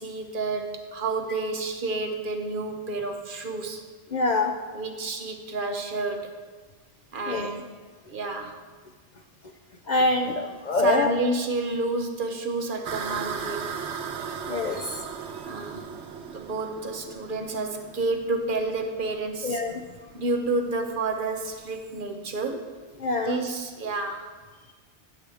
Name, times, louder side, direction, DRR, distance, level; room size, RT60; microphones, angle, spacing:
voice 1, 0.0-3.8 4.7-6.3 7.1-7.7 8.1-8.6 10.7-13.7 15.4-15.9 16.3-19.6 20.1-22.7 23.2-24.3, right 3 dB, 55° right, 4 dB, 0.9 m, -30 dB
voice 2, 4.1-4.5 7.3-7.5 9.9-11.1 14.5-15.0 19.4-19.8 23.0-23.4, left 2 dB, 55° left, 3 dB, 0.5 m, -25 dB
sound 1, 12.8-22.0, right 6 dB, 85° right, 1.0 m, -38 dB
9.5 x 7.6 x 3.4 m, 1.4 s
omnidirectional pair, 1.1 m